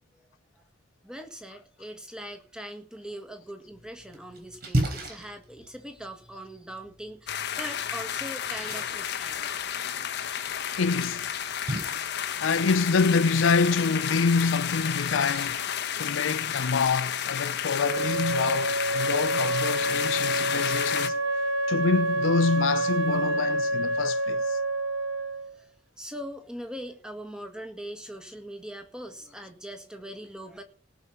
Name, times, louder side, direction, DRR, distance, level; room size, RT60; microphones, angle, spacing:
voice 1, 1.0-9.5 25.5-25.7 26.0-30.6, equal, 5° right, 1.7 m, -41 dB
Splash splatter, 3.7-16.7, right 1 dB, 55° right, 3.8 m, -38 dB
sound 1, 7.3-21.1, left 9 dB, 60° left, 1.1 m, -31 dB
voice 2, 10.8-11.3 12.4-15.6 15.9-21.2 21.7-24.6, left 4 dB, 80° left, 0.5 m, -26 dB
Wind instrument woodwind instrument, 17.8-25.5, right 1 dB, 80° right, 1.2 m, -28 dB
18.5 x 6.3 x 5.5 m
head